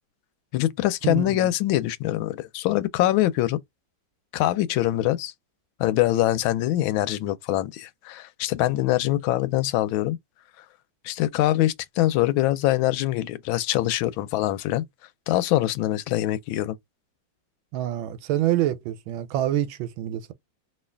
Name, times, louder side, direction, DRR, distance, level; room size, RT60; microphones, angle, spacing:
voice 1, 0.5-3.6 4.3-5.3 5.8-10.2 11.0-14.8 15.3-16.8, left 15 dB, 85° left, 1.4 m, -24 dB
voice 2, 1.0-1.5 17.7-20.3, right 13 dB, 90° right, 1.4 m, -26 dB
3.1 x 2.7 x 3.3 m
omnidirectional pair, 2.1 m